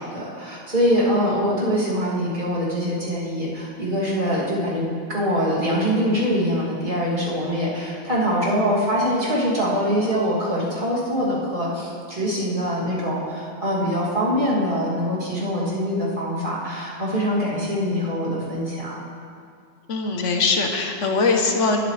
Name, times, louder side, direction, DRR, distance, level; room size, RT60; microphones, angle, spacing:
voice 1, 0.0-4.8 5.1-18.9, equal, 45° right, -8 dB, 3.0 m, -23 dB
voice 2, 1.2-1.5 19.9-21.8, left 3 dB, 80° left, 3 dB, 1.3 m, -22 dB
20.0 x 8.2 x 3.3 m, 2.3 s
omnidirectional pair, 1.2 m